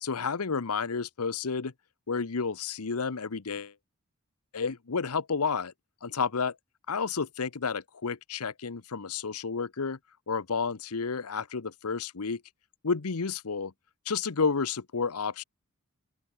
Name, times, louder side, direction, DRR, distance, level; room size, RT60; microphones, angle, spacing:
voice 1, 0.0-1.7 2.1-3.7 4.5-5.7 6.0-6.5 6.9-10.0 10.3-12.4 12.8-13.7 14.1-15.4, left 5 dB, 85° left, 0.9 m, -31 dB
open air
head